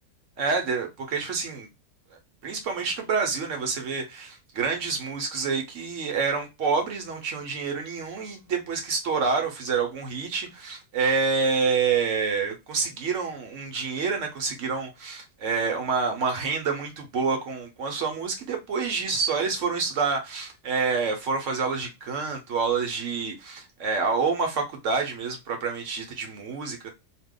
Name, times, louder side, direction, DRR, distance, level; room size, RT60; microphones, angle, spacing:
voice 1, 0.4-1.7 2.4-26.9, right 5 dB, 60° right, 0.8 m, -27 dB
2.8 x 2.2 x 3.6 m
omnidirectional pair, 1.9 m